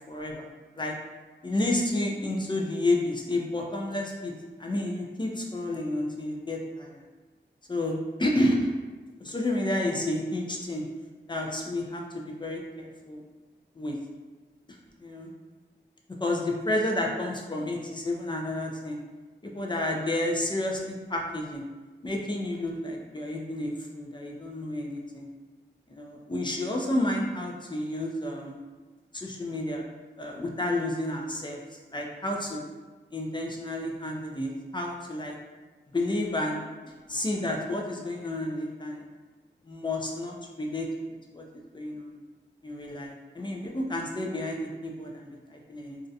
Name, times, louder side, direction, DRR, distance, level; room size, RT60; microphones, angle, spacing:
voice 1, 0.1-0.5 0.8-0.9 1.4-4.3 4.6-7.0 7.7-8.7 9.2-10.9 11.3-13.2 13.8-14.0 15.0-15.3 16.2-19.0 19.5-21.6 22.0-25.3 25.9-28.6 29.1-29.8 30.2-31.6 31.9-32.6 33.1-35.4 35.9-36.6 37.1-39.0 39.7-40.9 41.3-41.4 41.7-42.2 42.6-46.0, left 1 dB, 25° left, 0 dB, 0.4 m, -30 dB
2.4 x 2.1 x 2.6 m, 1.3 s
wide cardioid pair, 70°, 19 cm